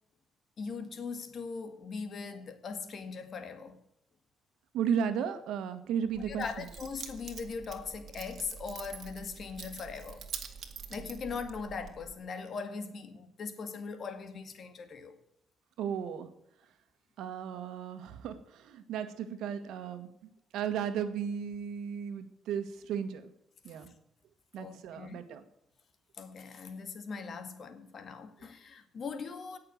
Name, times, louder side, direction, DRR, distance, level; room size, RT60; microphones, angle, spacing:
voice 1, 0.6-3.8 6.3-10.3 10.9-15.2 24.6-25.2 26.2-29.6, left 5 dB, 55° left, 2.1 m, -40 dB
voice 2, 4.7-6.7 15.8-16.3 17.2-23.3 23.6-23.9 24.5-25.4, right 8 dB, 85° right, 1.7 m, -35 dB
Keys jangling, 6.1-12.1, right 6 dB, 55° right, 2.0 m, -46 dB
17.5 x 6.8 x 7.9 m
cardioid pair, 90°, 0 cm